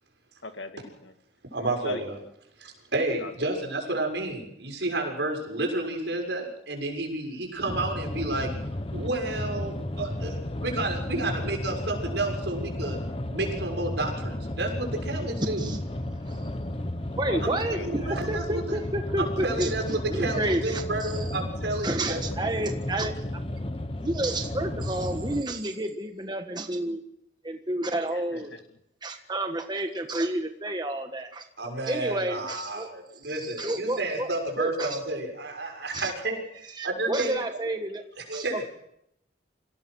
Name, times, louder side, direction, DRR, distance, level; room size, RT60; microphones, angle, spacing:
voice 1, 0.4-1.1 1.8-2.0 3.2-3.5 17.2-17.9 28.1-28.6, left 3 dB, 85° left, 7 dB, 2.0 m, -39 dB
voice 2, 1.5-2.2 2.6-8.5 8.9-13.0 13.3-15.6 17.4-17.5 17.8-18.8 19.2-22.2 22.6-22.7 31.6-36.4 36.8-37.4 38.3-38.7, right 2 dB, 75° right, 2 dB, 6.5 m, -31 dB
sound 1, 7.7-25.4, left 1 dB, 30° left, 1.3 m, -33 dB
voice 3, 17.2-17.8 18.3-21.1 21.8-23.1 24.0-27.0 27.4-28.5 29.0-31.4 31.9-32.9 33.4-34.3 34.6-34.9 35.9-36.1 36.8-38.0 38.3-38.7, right 1 dB, 25° right, 5 dB, 1.4 m, -30 dB
26.0 x 17.0 x 6.4 m, 0.77 s
head